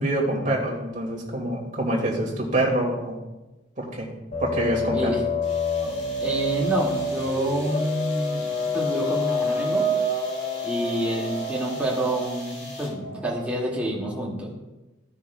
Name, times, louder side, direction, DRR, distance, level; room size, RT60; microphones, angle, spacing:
voice 1, 0.0-3.2 3.8-4.1 4.4-5.1, right 1 dB, 40° right, -2 dB, 2.2 m, -26 dB
sound 1, 4.3-13.6, left 2 dB, 35° left, 1.3 m, -28 dB
voice 2, 4.9-5.2 6.2-8.4 8.7-9.9 10.6-14.5, right 1 dB, 5° right, -6 dB, 2.2 m, -27 dB
sound 2, 5.4-13.1, left 1 dB, 65° left, 2.9 m, -44 dB
15.5 x 6.3 x 2.3 m, 1.0 s
head